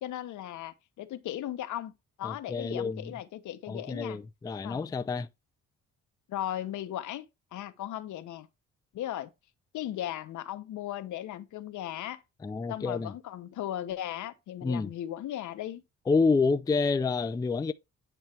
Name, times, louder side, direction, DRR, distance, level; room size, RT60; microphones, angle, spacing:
voice 1, 0.0-1.9 2.2-4.2 4.6-4.8 6.3-7.2 7.5-8.5 8.9-9.3 9.7-12.2 12.7-15.8, left 12 dB, 75° left, 0.9 m, -37 dB
voice 2, 2.2-3.1 3.7-5.3 12.4-13.1 14.6-14.9 16.1-17.7, left 4 dB, 15° left, 0.3 m, -28 dB
9.3 x 3.1 x 4.4 m
cardioid pair, 90°, 30 cm